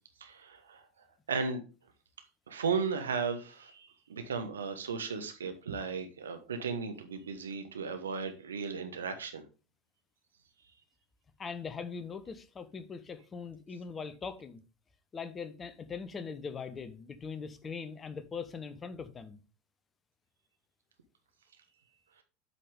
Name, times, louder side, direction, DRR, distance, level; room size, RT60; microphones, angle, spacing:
voice 1, 0.2-0.8 1.3-1.6 2.5-9.4, right 5 dB, 75° right, 1.2 m, -35 dB
voice 2, 11.4-14.6 15.1-19.4, left 5 dB, 25° left, 1.0 m, -41 dB
8.1 x 5.7 x 3.6 m
figure-of-eight pair, 80°, 0 cm